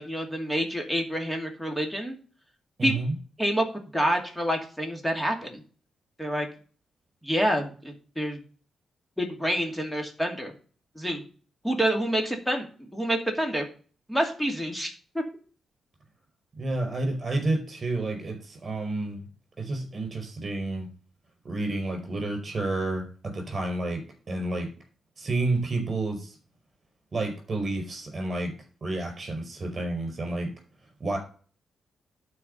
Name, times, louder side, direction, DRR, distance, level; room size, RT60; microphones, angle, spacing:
voice 1, 0.0-2.2 2.8-3.0 3.4-3.7 3.9-5.6 6.2-6.5 7.2-8.4 9.2-10.5 11.0-11.2 11.6-13.6 14.1-15.2, equal, 5° left, 2 dB, 2.4 m, -27 dB
voice 2, 2.8-3.1 16.6-19.2 19.6-20.9 21.4-24.0 24.3-24.7 25.2-26.4 27.1-28.5 28.8-30.5 31.0-31.2, right 2 dB, 40° right, 3 dB, 5.0 m, -30 dB
11.5 x 4.8 x 5.4 m, 0.40 s
cardioid pair, 85°, 0 cm